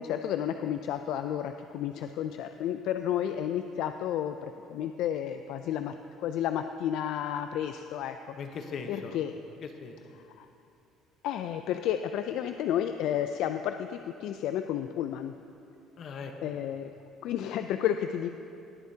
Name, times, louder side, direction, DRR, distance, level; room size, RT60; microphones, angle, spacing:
voice 1, 0.0-8.3 8.9-9.3 10.4-10.5 11.2-15.3 16.4-16.9 17.2-18.3, left 10 dB, 75° left, 8 dB, 0.3 m, -31 dB
voice 2, 8.4-9.2 9.6-10.0 16.0-16.6, left 5 dB, 50° left, 5 dB, 0.9 m, -40 dB
19.0 x 8.0 x 2.8 m, 2.7 s
cardioid pair, 120°, 0 cm